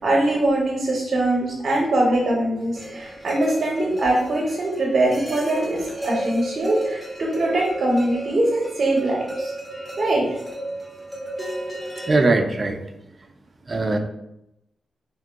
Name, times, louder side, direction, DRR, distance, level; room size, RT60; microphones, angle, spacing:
voice 1, 0.0-9.5 10.0-10.2, right 1 dB, 50° right, -2 dB, 0.8 m, -22 dB
sound 1, 2.7-12.2, right 1 dB, 10° left, 0.9 m, -33 dB
voice 2, 12.1-12.8 13.7-14.0, right 2 dB, 30° right, 5 dB, 0.4 m, -20 dB
4.8 x 3.6 x 2.2 m, 0.85 s
wide cardioid pair, 140°, 0 cm